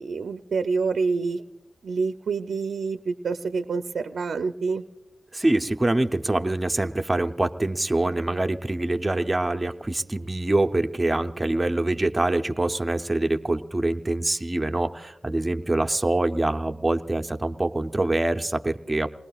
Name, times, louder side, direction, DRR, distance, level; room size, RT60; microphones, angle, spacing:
voice 1, 0.0-1.4 1.8-4.8, right 4 dB, 80° right, 7 dB, 0.4 m, -27 dB
voice 2, 5.3-19.1, right 2 dB, 15° right, 6 dB, 0.6 m, -25 dB
28.0 x 20.5 x 2.3 m, 1.0 s
wide cardioid pair, 135°, 0 cm